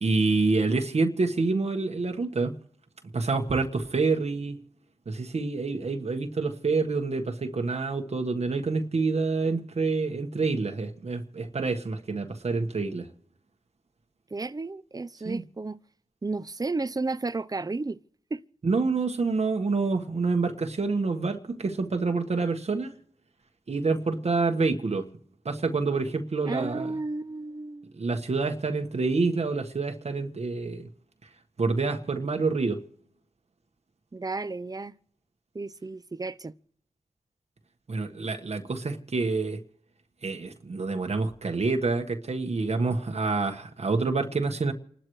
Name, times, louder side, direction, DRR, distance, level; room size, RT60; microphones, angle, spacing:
voice 1, 0.0-2.5 3.1-4.6 5.1-13.1 15.2-15.4 18.6-22.9 23.7-25.1 25.4-26.9 27.9-30.9 31.6-32.8 37.9-39.6 40.2-44.7, right 3 dB, 60° right, 1.5 m, -27 dB
voice 2, 14.3-15.8 16.2-18.0 18.3-18.4 26.5-28.0 34.1-35.0 35.5-36.5, right 3 dB, 30° right, 0.7 m, -33 dB
29.0 x 12.5 x 3.2 m
cardioid pair, 45°, 12 cm